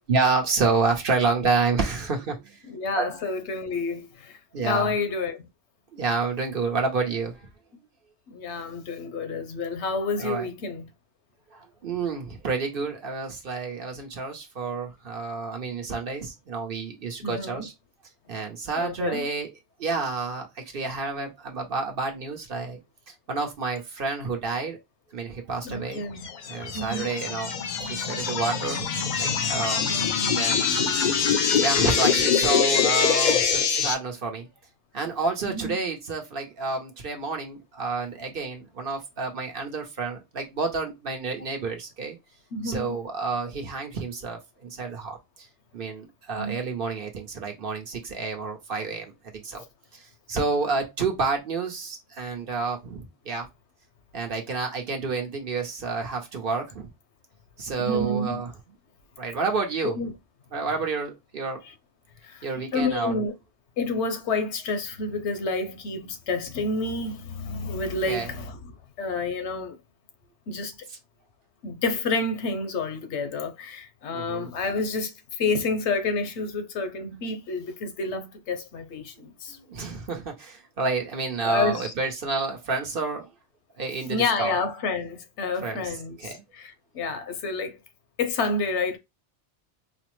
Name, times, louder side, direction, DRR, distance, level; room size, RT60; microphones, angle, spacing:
voice 1, 0.1-2.6 3.0-3.1 4.5-4.9 5.9-7.5 10.2-10.5 11.5-17.7 18.3-19.5 19.8-22.8 23.1-24.8 25.1-26.0 26.5-27.5 27.8-28.8 29.2-30.0 30.3-31.2 31.6-34.5 34.9-42.2 42.6-45.5 45.7-49.6 49.9-53.5 54.1-56.9 57.6-58.5 59.2-60.0 60.5-61.6 62.4-63.2 68.1-68.3 74.1-74.5 79.2-83.3 83.8-84.6 85.6-85.9 86.2-86.4, right 4 dB, 55° right, 1.0 m, -29 dB
voice 2, 2.7-4.4 4.6-5.4 8.3-10.9 17.2-17.6 18.8-19.3 25.6-26.3 26.7-27.1 29.9-30.4 35.5-35.8 42.5-43.0 46.4-46.6 57.8-58.4 59.8-60.1 62.2-63.3 63.8-68.7 69.0-69.8 70.5-70.9 71.6-79.6 81.4-81.9 84.1-87.8 88.2-89.0, left 3 dB, 80° left, 1.0 m, -29 dB
sound 1, 26.2-33.9, left 6 dB, 55° left, 0.6 m, -24 dB
4.3 x 2.0 x 3.0 m
omnidirectional pair, 1.2 m